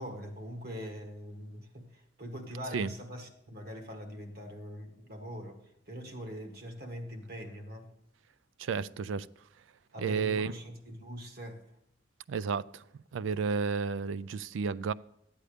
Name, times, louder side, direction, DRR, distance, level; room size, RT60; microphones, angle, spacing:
voice 1, 0.0-7.9 9.9-11.6, equal, 55° right, 1.6 m, -43 dB
voice 2, 8.6-9.3 10.0-10.5 12.3-12.8 13.1-14.9, right 5 dB, 75° right, 0.4 m, -32 dB
12.5 x 8.2 x 5.1 m
head